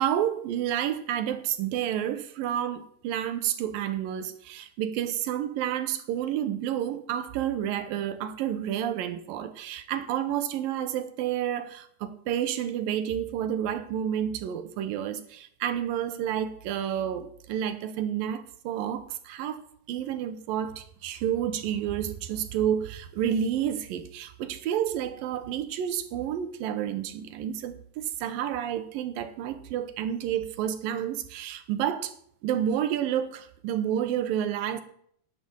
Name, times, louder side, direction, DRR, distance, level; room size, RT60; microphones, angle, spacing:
voice 1, 0.0-32.1 32.4-34.8, right 10 dB, 80° right, 2.7 m, -30 dB
10.5 x 9.1 x 7.5 m
omnidirectional pair, 4.2 m